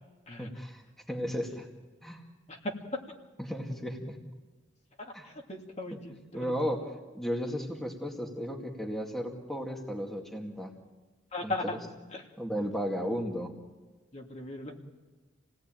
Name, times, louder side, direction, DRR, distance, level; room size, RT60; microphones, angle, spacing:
voice 1, 0.4-0.8 1.1-1.7 2.0-2.2 3.4-4.2 5.1-5.3 6.3-6.8 7.1-10.7 11.4-11.5 12.4-13.5, equal, ahead, 1 dB, 2.1 m, -34 dB
voice 2, 5.0-6.8 11.3-11.8 12.1-12.3 14.1-14.8, left 2 dB, 35° left, 1 dB, 2.5 m, -38 dB
29.0 x 18.0 x 9.0 m, 1.2 s
head